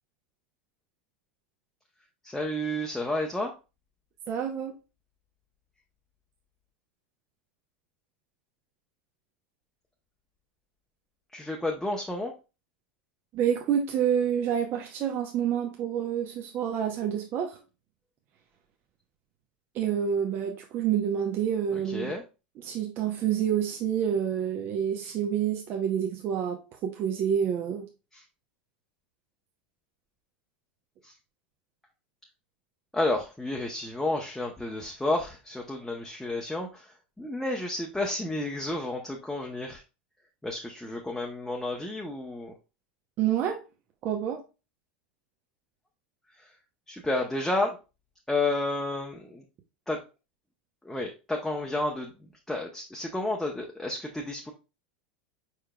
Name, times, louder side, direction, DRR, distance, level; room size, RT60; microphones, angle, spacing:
voice 1, 2.2-3.5 11.3-12.3 21.7-22.2 25.0-25.1 28.1-28.2 31.0-31.2 32.9-39.8 40.4-42.5 46.3-46.6 46.9-47.8 48.3-49.4 49.9-50.0 50.8-54.5, left 2 dB, 5° left, 0.7 m, -31 dB
voice 2, 4.3-4.8 13.3-17.6 19.7-22.1 22.6-27.9 43.2-43.6 44.0-44.4, right 9 dB, 40° right, 0.8 m, -28 dB
4.7 x 4.7 x 2.2 m
hypercardioid pair, 90°, 5 cm